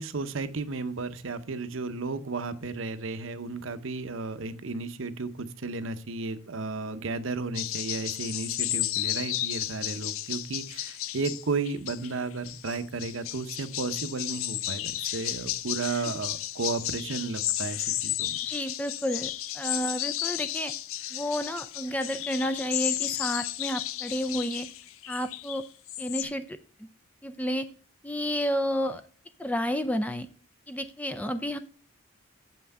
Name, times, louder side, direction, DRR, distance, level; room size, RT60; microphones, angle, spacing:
voice 1, 0.0-18.4, right 3 dB, 65° right, 11 dB, 0.7 m, -33 dB
sound 1, 7.5-26.2, left 14 dB, 70° left, 0.4 m, -33 dB
voice 2, 18.5-20.7 21.1-24.7 25.1-25.7 26.0-26.9 27.2-27.7 28.0-29.0 29.4-30.3 30.7-31.6, equal, 5° left, 10 dB, 0.4 m, -31 dB
7.4 x 5.8 x 5.3 m, 0.41 s
head